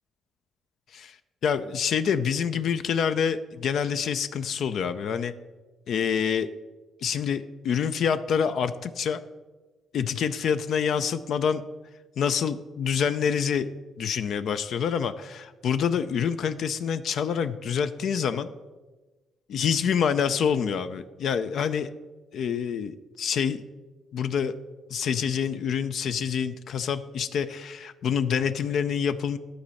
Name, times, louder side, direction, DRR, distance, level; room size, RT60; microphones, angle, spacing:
voice 1, 1.4-5.3 5.9-6.5 7.0-9.2 9.9-11.6 12.2-13.7 14.0-18.5 19.5-21.9 22.3-23.6 24.1-24.5 24.9-29.4, left 7 dB, 70° left, 11 dB, 0.4 m, -26 dB
10.5 x 4.2 x 7.6 m, 1.2 s
cardioid pair, 90°, 0 cm